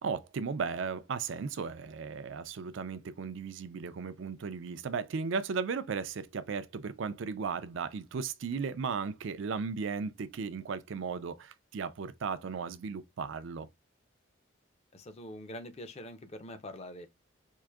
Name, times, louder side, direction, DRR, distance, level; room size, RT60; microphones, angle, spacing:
voice 1, 0.0-13.7, right 5 dB, 60° right, 0.4 m, -36 dB
voice 2, 14.9-17.1, left 1 dB, 30° left, 0.5 m, -44 dB
4.7 x 2.5 x 2.3 m
head